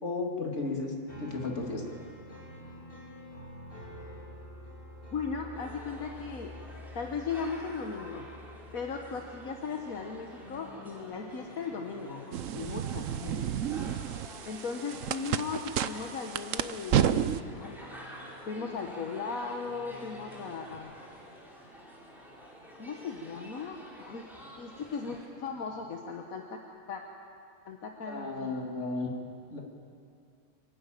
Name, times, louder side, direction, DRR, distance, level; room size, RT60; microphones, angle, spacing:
voice 1, 0.0-0.9 1.2-1.8 13.1-13.3 28.1-29.1 29.5-29.6, left 3 dB, 60° left, 0 dB, 2.9 m, -34 dB
sound 1, 1.1-13.6 16.6-20.8, left 1 dB, 40° left, 4.3 m, -49 dB
voice 2, 5.1-6.5 6.9-8.3 8.7-12.3 12.5-13.1 14.5-17.1 17.5-17.8 18.5-20.9 22.8-24.2 24.6-26.6 26.9-27.0 27.7-28.5, left 5 dB, 80° left, 2 dB, 1.6 m, -37 dB
sound 2, 5.5-25.3, equal, ahead, 3.9 m, -50 dB
sound 3, 12.3-17.4, right 9 dB, 70° right, 1.0 m, -31 dB
26.0 x 12.0 x 9.2 m, 2.4 s
omnidirectional pair, 1.4 m